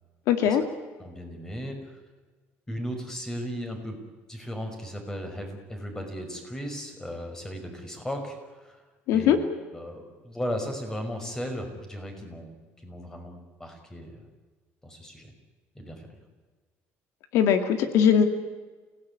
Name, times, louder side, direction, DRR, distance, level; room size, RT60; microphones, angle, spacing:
voice 1, 0.3-0.6 9.1-9.4 17.3-18.2, left 8 dB, 75° left, 8 dB, 2.2 m, -20 dB
voice 2, 1.0-1.9 2.7-4.0 4.3-8.8 9.1-9.4 9.7-12.5 12.8-14.2 14.8-15.3 15.8-16.2, equal, 10° left, 5 dB, 5.5 m, -36 dB
28.0 x 18.0 x 9.8 m, 1.4 s
cardioid pair, 135°, 5 cm